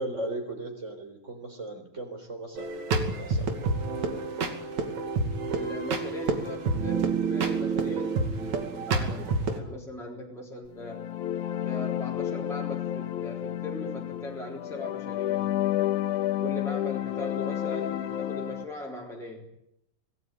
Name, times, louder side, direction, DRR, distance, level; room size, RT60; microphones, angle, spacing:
voice 1, 0.0-3.5, right 2 dB, 20° right, 6 dB, 4.1 m, -37 dB
sound 1, 2.6-9.6, right 4 dB, 60° right, 3.7 m, -28 dB
voice 2, 5.5-11.0 11.6-15.5 16.4-19.5, left 1 dB, ahead, -2 dB, 3.2 m, -40 dB
sound 2, 10.7-18.6, left 12 dB, 70° left, 2.6 m, -30 dB
26.0 x 18.5 x 9.3 m, 0.81 s
omnidirectional pair, 3.9 m